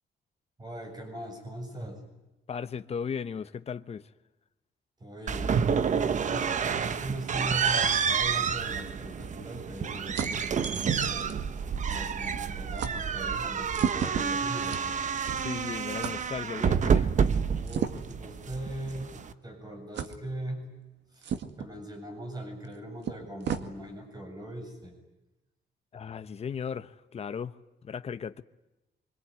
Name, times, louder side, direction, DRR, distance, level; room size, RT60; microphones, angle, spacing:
voice 1, 0.6-2.0 5.0-11.3 11.9-14.9 17.6-20.7 21.1-21.3 21.6-24.9, right 1 dB, 20° right, 7.5 m, -40 dB
voice 2, 2.5-4.1 15.3-17.4 25.9-27.5 27.8-28.4, left 6 dB, 35° left, 0.9 m, -36 dB
sound 1, 5.3-19.3, right 6 dB, 45° right, 1.1 m, -29 dB
sound 2, 9.6-12.1 12.3-12.5 12.8-13.0 13.7-15.6 16.0-16.2 17.6-18.2 18.9-19.0 19.9-20.2 21.2-21.7 22.6-22.7 23.0-23.7, right 8 dB, 90° right, 2.1 m, -35 dB
25.5 x 24.5 x 9.6 m
wide cardioid pair, 155°, 18 cm